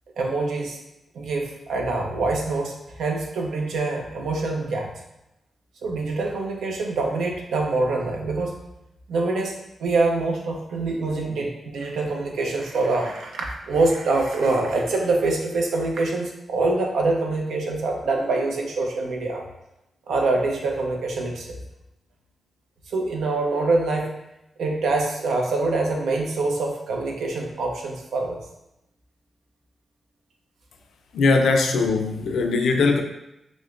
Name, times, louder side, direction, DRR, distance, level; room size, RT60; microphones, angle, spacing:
voice 1, 0.2-0.8 1.1-4.9 5.8-8.5 9.1-19.4 20.1-21.6 22.9-24.1 24.6-28.4 31.5-31.6, right 3 dB, 85° right, 1 dB, 0.6 m, -25 dB
voice 2, 31.1-33.0, left 3 dB, 85° left, 5 dB, 0.4 m, -20 dB
6.0 x 2.1 x 2.4 m, 0.88 s
cardioid pair, 65°, 0 cm